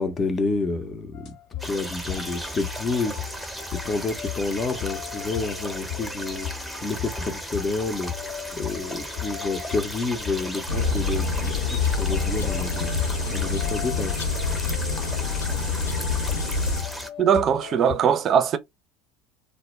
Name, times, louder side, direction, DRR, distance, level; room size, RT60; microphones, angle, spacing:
voice 1, 0.0-1.3 1.6-3.5 3.8-8.1 8.5-14.1, left 3 dB, 30° left, 0.6 m, -29 dB
sound 1, 1.1-18.0, left 10 dB, 60° left, 0.9 m, -37 dB
sound 2, 1.6-17.1, right 1 dB, ahead, 0.8 m, -36 dB
sound 3, 10.7-16.8, left 4 dB, 85° left, 0.5 m, -26 dB
voice 2, 17.2-18.6, right 8 dB, 45° right, 0.4 m, -20 dB
2.2 x 2.1 x 3.0 m
hypercardioid pair, 70°, 0 cm